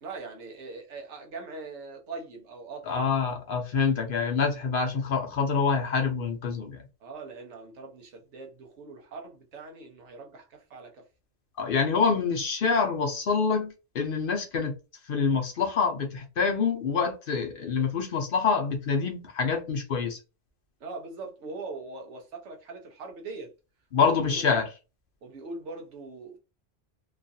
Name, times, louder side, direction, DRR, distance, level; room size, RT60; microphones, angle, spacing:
voice 1, 0.0-3.1 7.0-11.0 20.8-23.5 24.0-24.7 25.2-26.4, right 3 dB, 80° right, 1.1 m, -41 dB
voice 2, 2.9-6.8 11.6-14.7 15.0-20.2 23.9-24.7, left 5 dB, 55° left, 0.7 m, -26 dB
3.0 x 2.4 x 2.6 m
omnidirectional pair, 1.2 m